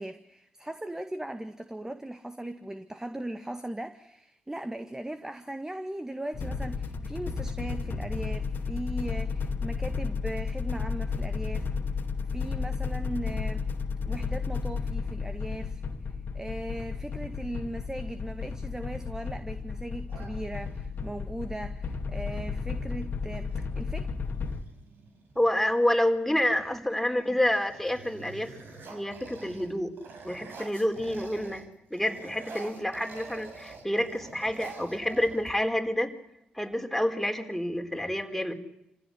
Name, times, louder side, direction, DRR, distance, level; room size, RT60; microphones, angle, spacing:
voice 1, 0.0-11.7 12.3-13.7 14.1-15.8 16.1-24.1 26.7-26.8 27.1-27.4, right 1 dB, 15° right, 9 dB, 1.8 m, -38 dB
sound 1, 6.3-24.6, left 5 dB, 50° left, 2.2 m, -33 dB
sound 2, 20.1-21.0 22.7-22.9 23.2-23.7 24.2-25.7 26.4-26.8 27.1-31.7 31.9-35.9, right 4 dB, 60° right, 6.0 m, -47 dB
voice 2, 25.3-28.5 28.9-29.9 30.2-31.6 31.9-36.1 36.5-38.5, left 1 dB, 5° left, 4 dB, 4.5 m, -28 dB
27.0 x 16.5 x 10.0 m, 0.85 s
hypercardioid pair, 45°, 4 cm